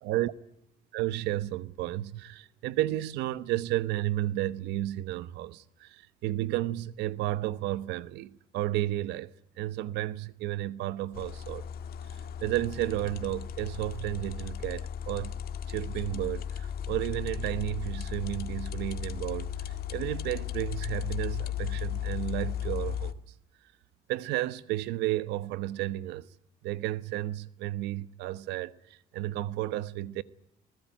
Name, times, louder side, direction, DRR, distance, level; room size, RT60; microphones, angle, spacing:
voice 1, 0.0-0.3 0.9-11.7 12.1-15.3 15.7-19.5 19.9-23.2 24.1-26.3 26.6-30.2, right 15 dB, 90° right, 1.1 m, -32 dB
sound 1, 11.1-23.1, left 9 dB, 65° left, 1.8 m, -36 dB
22.5 x 20.0 x 9.0 m
cardioid pair, 110°, 17 cm